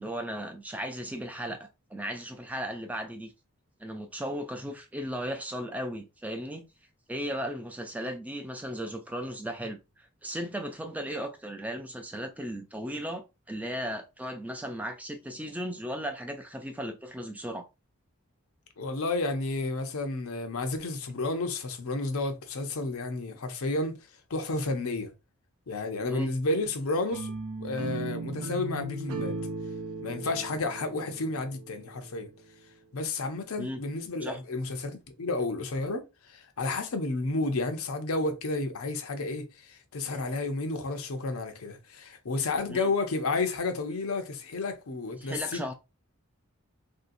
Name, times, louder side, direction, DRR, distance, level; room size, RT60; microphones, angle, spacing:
voice 1, 0.0-3.3 3.8-6.6 7.1-17.7 26.1-26.3 33.6-33.8 34.2-34.4 42.7-42.9 45.2-45.7, equal, 5° right, 0.3 m, -36 dB
voice 2, 18.8-24.0 24.3-25.1 25.7-27.3 27.6-29.4 30.0-32.3 32.9-45.7, left 3 dB, 75° left, 0.6 m, -31 dB
sound 1, 27.1-32.2, right 3 dB, 75° right, 0.5 m, -37 dB
3.1 x 2.7 x 2.6 m
head